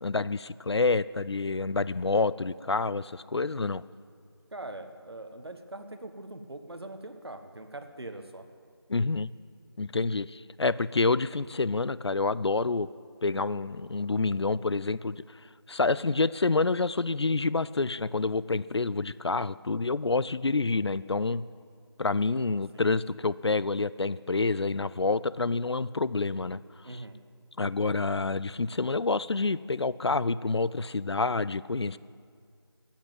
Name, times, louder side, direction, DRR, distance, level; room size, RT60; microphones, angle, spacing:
voice 1, 0.0-3.8 8.9-9.3 9.8-12.9 13.2-15.2 15.7-21.4 22.0-26.6 26.9-27.0 27.6-32.0, left 3 dB, 75° left, 18 dB, 0.5 m, -28 dB
voice 2, 4.5-8.4 22.3-22.9 26.8-27.1, right 2 dB, 65° right, 7 dB, 1.4 m, -42 dB
14.5 x 7.4 x 9.4 m, 2.2 s
figure-of-eight pair, 175°, 14 cm